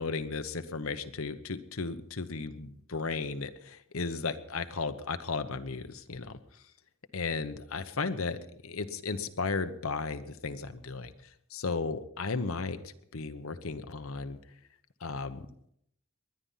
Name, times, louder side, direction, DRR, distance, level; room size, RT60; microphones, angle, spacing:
voice 1, 0.0-6.7 7.1-14.4 15.0-15.5, left 4 dB, 70° left, 9 dB, 1.0 m, -35 dB
20.5 x 11.0 x 5.7 m, 0.71 s
head